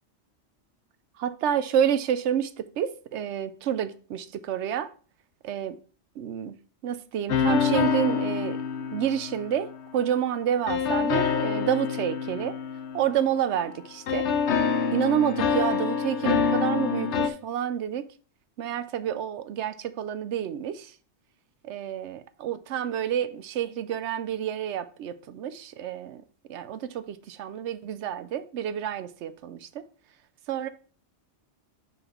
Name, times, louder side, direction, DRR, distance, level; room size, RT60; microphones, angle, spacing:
voice 1, 1.2-4.9 5.4-5.8 6.2-6.6 6.8-8.6 8.9-12.6 12.9-14.3 14.9-18.1 18.6-20.9 21.6-26.2 26.5-29.8 30.5-30.7, right 9 dB, 75° right, 12 dB, 0.9 m, -29 dB
sound 1, 7.3-10.0 10.7-13.7 14.1-17.3, left 6 dB, 75° left, 1.0 m, -26 dB
5.9 x 5.4 x 4.3 m, 0.40 s
omnidirectional pair, 1.2 m